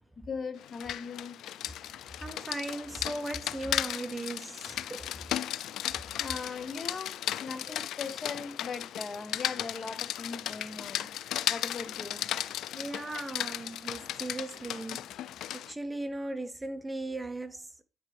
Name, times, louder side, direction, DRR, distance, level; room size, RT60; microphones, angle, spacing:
voice 1, 0.3-1.4 6.2-11.1 11.5-12.2, left 4 dB, 40° left, 1.1 m, -39 dB
Rain, 0.6-15.7, left 12 dB, 80° left, 0.3 m, -36 dB
voice 2, 1.7-5.1 7.7-7.8 12.8-15.1 15.5-17.8, right 2 dB, 15° right, 0.7 m, -38 dB
9.6 x 4.5 x 3.3 m
cardioid pair, 90°, 0 cm